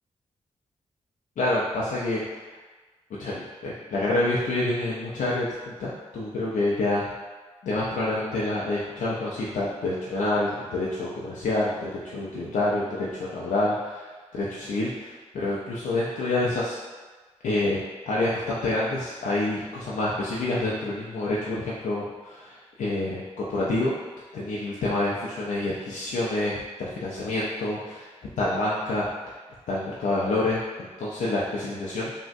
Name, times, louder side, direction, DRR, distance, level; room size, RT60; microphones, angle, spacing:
voice 1, 1.4-2.2 3.2-7.1 7.6-14.0 14.3-16.8 17.4-23.9 24.3-28.1 28.4-29.1 29.7-32.1, left 2 dB, 80° left, -7 dB, 0.4 m, -27 dB
3.5 x 2.0 x 2.5 m, 1.3 s
cardioid pair, 50°, 13 cm